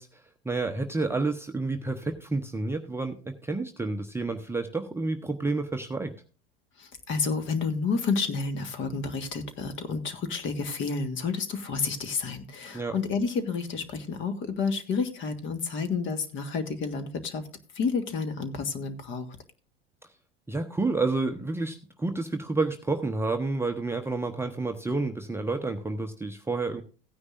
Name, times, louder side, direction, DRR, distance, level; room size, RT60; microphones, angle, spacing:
voice 1, 0.0-6.1 12.7-13.0 20.5-26.8, right 3 dB, 10° right, 4 dB, 0.7 m, -30 dB
voice 2, 6.8-17.4 17.7-19.3, left 4 dB, 40° left, 9 dB, 1.7 m, -30 dB
16.0 x 9.6 x 2.5 m, 0.36 s
figure-of-eight pair, 75°, 30 cm